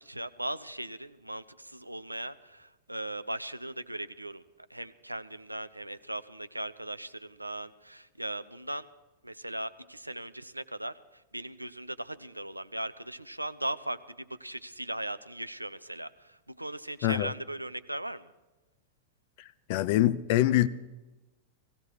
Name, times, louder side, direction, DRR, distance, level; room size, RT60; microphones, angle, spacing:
voice 1, 0.0-8.9 9.2-18.3, right 1 dB, 85° right, 0.6 m, -38 dB
voice 2, 19.7-20.7, left 14 dB, 50° left, 0.6 m, -24 dB
17.5 x 16.0 x 4.8 m
figure-of-eight pair, 90°, 0 cm